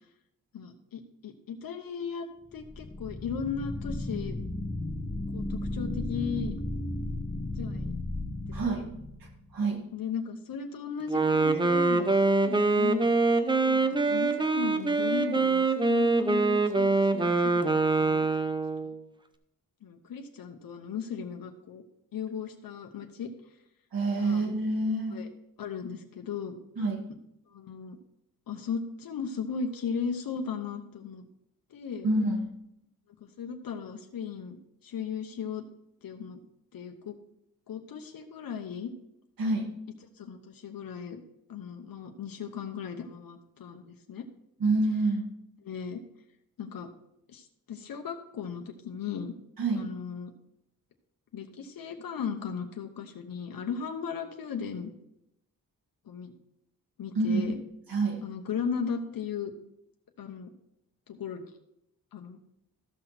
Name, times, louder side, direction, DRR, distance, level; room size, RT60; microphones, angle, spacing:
voice 1, 0.5-2.3 2.5-4.4 5.3-6.5 7.5-8.0 8.5-8.8 9.9-13.1 13.6-17.7 18.0-18.3 18.8-18.9 19.8-21.8 22.1-23.3 24.2-24.4 25.1-25.3 25.6-26.6 27.5-28.0 28.5-31.2 31.7-32.1 33.2-34.6 34.8-35.6 36.0-36.4 36.7-37.2 37.7-38.9 40.2-41.2 41.5-44.3 45.6-46.0 46.6-46.9 47.3-49.3 49.7-50.3 51.3-54.9 56.1-56.3 57.0-57.6 58.2-59.5 60.2-60.5 61.1-61.5 62.1-62.4, left 6 dB, 90° left, 4 dB, 1.0 m, -36 dB
sound 1, 2.5-9.6, left 1 dB, 20° left, 1.6 m, -35 dB
voice 2, 8.5-8.9 9.2-9.8 23.9-25.2 26.8-27.0 32.0-32.5 39.4-39.7 44.6-45.3 49.6-49.9 57.1-57.6 57.9-58.2, right 2 dB, 85° right, -1 dB, 2.2 m, -27 dB
Wind instrument woodwind instrument, 11.1-19.0, right 3 dB, 15° right, 0.6 m, -24 dB
14.0 x 6.0 x 4.3 m, 0.80 s
wide cardioid pair, 150°, 34 cm